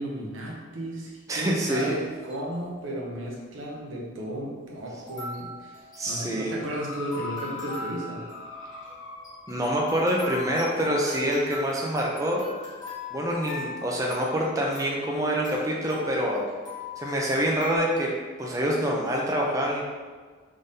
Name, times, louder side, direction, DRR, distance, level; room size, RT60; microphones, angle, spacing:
voice 1, 0.0-8.2, right 1 dB, 90° right, -2 dB, 0.8 m, -34 dB
voice 2, 1.3-2.0 6.0-6.6 9.5-12.4 13.1-16.4 17.0-18.1 18.4-19.8, equal, 15° right, -2 dB, 0.4 m, -26 dB
sound 1, 2.0-2.5 3.4-3.5 5.0-17.8, left 3 dB, 20° left, 1.3 m, -40 dB
sound 2, 6.6-10.2 11.1-11.2, left 2 dB, 85° left, 0.6 m, -42 dB
3.7 x 3.4 x 2.6 m, 1.5 s
head